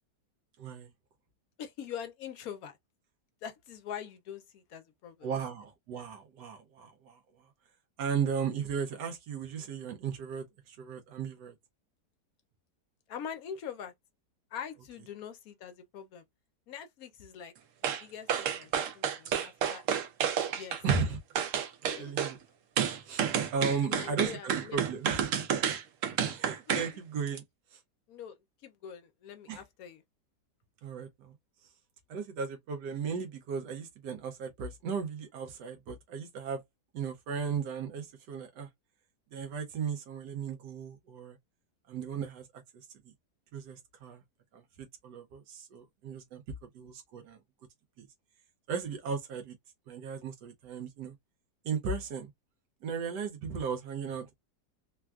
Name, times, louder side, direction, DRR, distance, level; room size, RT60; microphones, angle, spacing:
voice 1, 0.6-0.9 5.2-7.2 8.0-11.5 20.8-21.2 22.0-22.4 23.0-23.3 23.5-25.3 26.3-27.4 27.7-27.8 29.5-29.6 30.8-31.3 32.1-36.6 36.9-38.7 39.3-41.4 41.9-42.9 43.5-44.2 44.5-46.4 46.7-47.4 48.0-48.1 48.7-49.6 49.9-51.1 51.6-52.3 52.8-54.3, right 6 dB, 85° right, 1.2 m, -36 dB
voice 2, 1.6-2.8 3.4-5.3 13.1-13.9 14.5-16.2 16.7-17.5 18.0-19.8 20.6-20.8 21.9-22.2 23.8-24.8 26.7-27.0 28.1-30.0, left 8 dB, 70° left, 1.0 m, -43 dB
sound 1, 17.8-18.0 18.3-21.1 21.4-22.3 22.8-26.9 27.3-27.4, right 8 dB, 65° right, 0.8 m, -30 dB
3.4 x 2.3 x 2.3 m
omnidirectional pair, 1.7 m